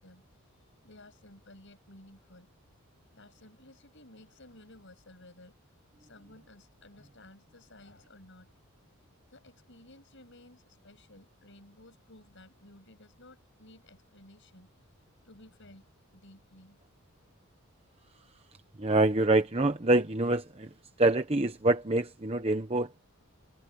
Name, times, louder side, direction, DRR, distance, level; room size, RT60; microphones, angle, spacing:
voice 1, 0.0-2.5 3.1-5.6 6.0-8.6 9.3-14.7 15.2-16.8, left 1 dB, 55° left, 8.0 m, -55 dB
voice 2, 18.8-20.7 21.0-23.0, right 2 dB, 25° right, 1.0 m, -26 dB
head